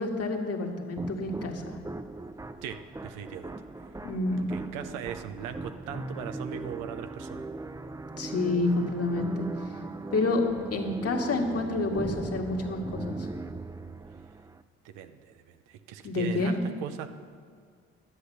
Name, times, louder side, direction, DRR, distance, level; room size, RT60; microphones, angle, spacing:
voice 1, 0.0-1.8 4.0-4.5 8.2-9.8 10.1-10.4 10.7-13.3 16.0-16.6, left 2 dB, 50° left, 1 dB, 1.8 m, -29 dB
sound 1, 1.0-14.6, right 2 dB, 10° right, 0.5 m, -39 dB
voice 2, 2.6-3.6 4.5-7.5 14.8-17.1, right 9 dB, 85° right, 9 dB, 0.7 m, -39 dB
11.0 x 8.0 x 6.5 m, 2.1 s
supercardioid pair, 50°, 30 cm